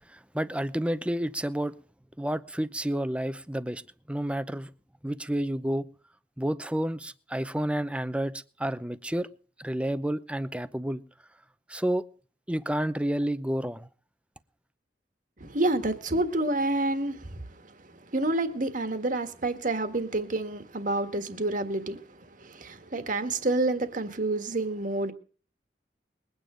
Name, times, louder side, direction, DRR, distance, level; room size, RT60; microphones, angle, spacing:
voice 1, 0.1-1.7 2.2-3.8 4.1-4.7 5.0-5.9 6.4-9.3 9.6-11.0 11.7-12.0 12.5-13.9, right 1 dB, 5° right, 0.7 m, -30 dB
voice 2, 15.4-17.7 18.1-25.1, right 2 dB, 45° right, 1.6 m, -29 dB
21.5 x 9.3 x 5.0 m
head